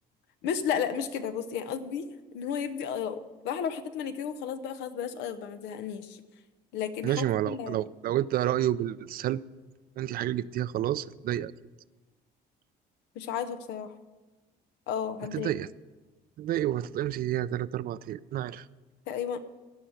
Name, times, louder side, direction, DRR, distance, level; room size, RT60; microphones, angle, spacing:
voice 1, 0.4-2.1 2.3-6.2 6.7-7.9 13.1-13.9 14.9-15.5 19.1-19.4, left 8 dB, 90° left, 10 dB, 0.9 m, -33 dB
voice 2, 7.0-9.4 10.0-11.5 15.3-15.7 16.4-18.6, right 12 dB, 60° right, 17 dB, 0.4 m, -29 dB
16.0 x 5.7 x 7.9 m, 1.2 s
cardioid pair, 110°, 17 cm